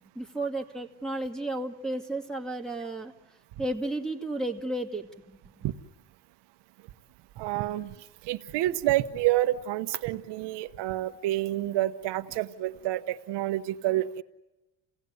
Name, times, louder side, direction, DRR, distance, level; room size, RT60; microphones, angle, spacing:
voice 1, 0.2-3.1 3.6-5.4, right 1 dB, ahead, 5 dB, 2.2 m, -33 dB
voice 2, 7.4-8.0 8.2-14.2, right 15 dB, 75° right, 9 dB, 1.1 m, -28 dB
29.0 x 17.5 x 9.5 m, 1.1 s
cardioid pair, 140°, 42 cm